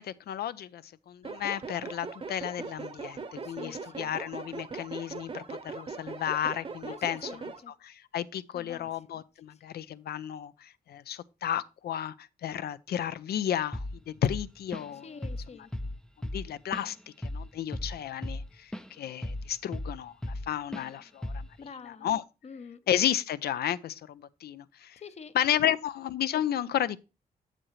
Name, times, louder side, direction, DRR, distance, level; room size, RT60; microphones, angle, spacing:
voice 1, 0.0-7.3 7.7-15.3 16.3-18.7 19.0-22.2 22.9-25.0 25.3-27.0, left 10 dB, 90° left, 0.5 m, -33 dB
sound 1, 1.2-7.6, right 4 dB, 35° right, 0.8 m, -40 dB
voice 2, 3.4-4.1 6.9-7.7 8.5-8.9 15.0-15.7 21.6-22.1 22.4-22.8 25.0-25.3, left 5 dB, 45° left, 0.6 m, -46 dB
Drum kit / Drum, 13.7-14.0 14.2-15.0 15.2-15.5 15.7-18.9 19.2-20.5 20.7-20.9 21.2-21.6, left 1 dB, 5° left, 0.4 m, -36 dB
7.5 x 7.5 x 3.1 m
wide cardioid pair, 130°, 16 cm